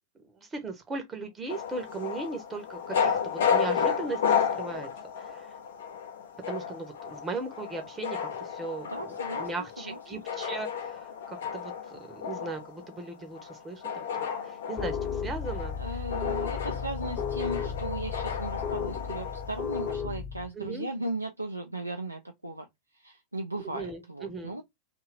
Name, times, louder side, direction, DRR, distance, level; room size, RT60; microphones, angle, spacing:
voice 1, 0.4-4.9 5.2-5.6 6.5-8.9 9.3-15.7 20.5-20.9 23.6-24.6, right 3 dB, 20° right, 0.7 m, -38 dB
sound 1, 1.5-19.9, left 7 dB, 60° left, 0.6 m, -33 dB
voice 2, 8.9-10.2 15.8-22.7 22.9-24.6, right 1 dB, 85° right, 0.4 m, -37 dB
sound 2, 14.8-20.5, left 7 dB, 15° left, 0.9 m, -34 dB
2.7 x 2.4 x 3.2 m
figure-of-eight pair, 90°, 0 cm